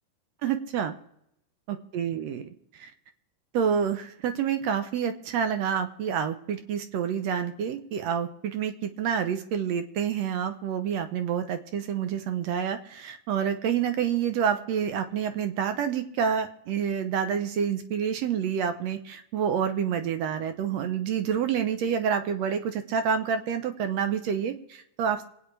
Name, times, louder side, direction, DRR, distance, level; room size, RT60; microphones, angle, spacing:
voice 1, 0.4-0.9 1.7-2.9 3.5-25.2, right 7 dB, 70° right, 8 dB, 1.7 m, -28 dB
27.0 x 9.2 x 3.3 m, 0.78 s
omnidirectional pair, 3.8 m